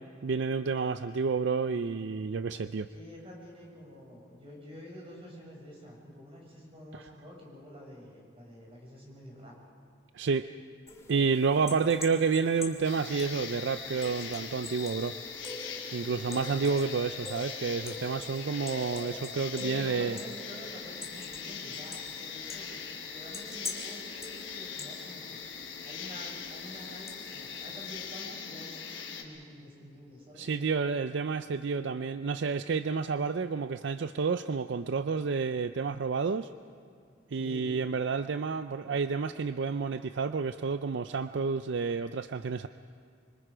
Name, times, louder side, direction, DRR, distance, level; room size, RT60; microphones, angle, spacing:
voice 1, 0.2-2.9 10.1-10.5 11.1-15.2 15.9-20.2 30.3-36.5 37.3-42.7, right 5 dB, 65° right, 11 dB, 0.5 m, -30 dB
voice 2, 2.9-9.5 15.9-16.4 19.5-25.4 25.8-30.5 37.3-37.7, equal, 30° right, -2 dB, 6.7 m, -48 dB
sound 1, 10.9-28.2, left 2 dB, 15° left, 2.3 m, -46 dB
sound 2, 12.8-29.2, left 6 dB, 90° left, 4.3 m, -41 dB
26.5 x 25.0 x 5.0 m, 2.3 s
head